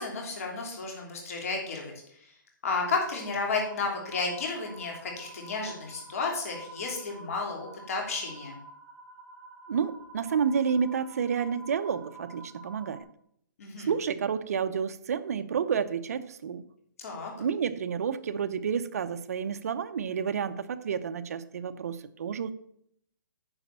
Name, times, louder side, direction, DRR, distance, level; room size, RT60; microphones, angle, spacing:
voice 1, 0.0-1.9 2.6-8.6 13.6-13.9 17.0-17.3, left 4 dB, 40° left, 0 dB, 3.1 m, -32 dB
sound 1, 2.8-13.0, right 1 dB, 5° right, 2.3 m, -49 dB
voice 2, 9.7-13.1 13.8-16.6 17.4-22.5, right 7 dB, 45° right, 10 dB, 0.7 m, -30 dB
9.8 x 5.0 x 6.8 m, 0.69 s
hypercardioid pair, 170°, 11 cm